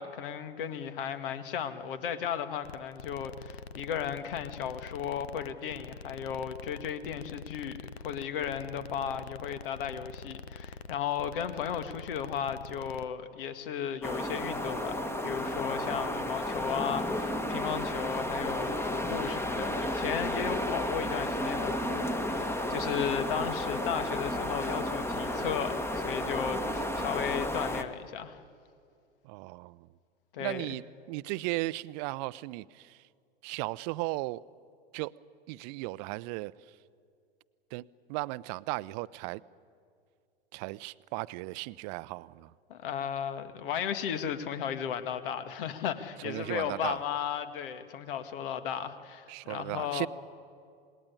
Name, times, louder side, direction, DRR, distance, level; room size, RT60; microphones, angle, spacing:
voice 1, 0.0-28.4 30.3-30.6 42.7-50.1, left 8 dB, 60° left, 1.9 m, -35 dB
sound 1, 2.6-13.1, left 5 dB, 80° left, 0.9 m, -45 dB
sound 2, 14.0-27.8, left 1 dB, 10° left, 1.4 m, -32 dB
voice 2, 29.2-29.9 30.4-33.1 33.4-34.4 34.9-35.1 35.5-36.8 37.7-39.4 40.5-42.5 46.2-47.0 49.3-50.1, right 21 dB, 45° right, 0.7 m, -36 dB
27.5 x 20.5 x 9.9 m
figure-of-eight pair, 90°, 31 cm